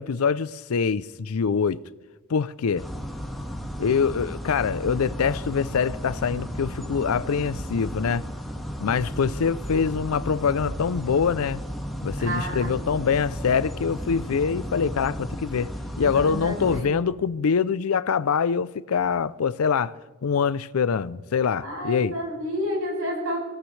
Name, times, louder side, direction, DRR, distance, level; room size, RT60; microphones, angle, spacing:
voice 1, 0.0-1.8 2.3-2.8 3.8-8.2 8.8-11.6 12.0-15.7 16.0-19.9 20.2-22.1, left 6 dB, 85° left, 0.5 m, -24 dB
sound 1, 2.8-16.8, equal, ahead, 1.5 m, -34 dB
voice 2, 12.2-12.9 16.0-16.9 21.6-23.4, equal, 80° right, 7.5 m, -30 dB
25.0 x 17.0 x 3.3 m
head